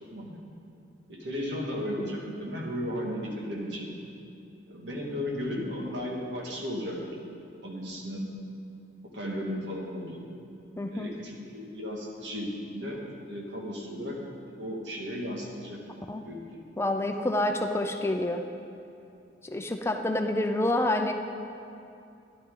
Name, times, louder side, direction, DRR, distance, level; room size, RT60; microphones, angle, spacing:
voice 1, 0.0-0.4 1.1-3.9 4.7-7.4 7.6-8.3 9.1-10.2 10.9-14.2 14.6-15.8 16.2-16.4, equal, 90° right, -2 dB, 1.9 m, -35 dB
voice 2, 10.8-11.1 16.1-16.2 16.8-18.4 19.4-21.1, left 1 dB, 15° left, 5 dB, 0.5 m, -28 dB
12.5 x 11.0 x 3.8 m, 2.6 s
head